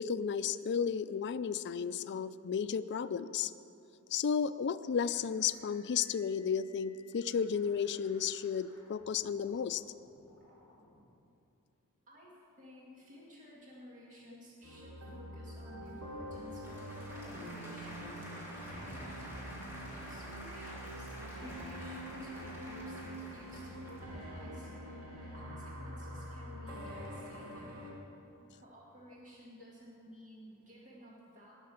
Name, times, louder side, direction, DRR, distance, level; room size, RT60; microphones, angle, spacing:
voice 1, 0.0-3.5 4.1-9.8, left 7 dB, 50° left, 14 dB, 0.4 m, -33 dB
sound 1, 4.9-11.0, left 1 dB, 10° left, 3.9 m, -63 dB
voice 2, 12.1-19.3 20.0-27.7 28.5-31.5, equal, 35° right, -5 dB, 2.0 m, -55 dB
sound 2, 14.6-27.9, equal, 70° right, 2.8 m, -45 dB
Applause / Crowd, 15.7-24.5, equal, 10° right, 2.8 m, -49 dB
18.0 x 6.6 x 7.0 m, 2.7 s
head